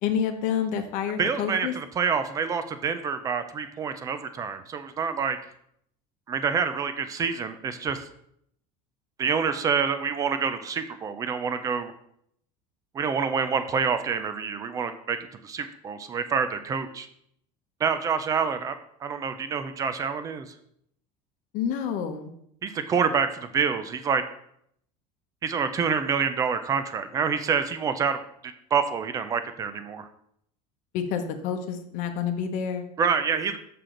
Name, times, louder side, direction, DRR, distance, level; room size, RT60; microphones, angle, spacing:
voice 1, 0.0-1.7 21.5-22.3 30.9-32.8, left 7 dB, 50° left, 7 dB, 0.9 m, -28 dB
voice 2, 1.2-5.4 6.3-8.0 9.2-11.9 12.9-15.2 15.4-17.1 17.8-18.7 19.0-20.5 22.6-24.2 25.4-30.1 33.0-33.6, right 6 dB, 20° right, 10 dB, 0.4 m, -27 dB
6.7 x 5.9 x 3.8 m, 0.71 s
cardioid pair, 170°, 17 cm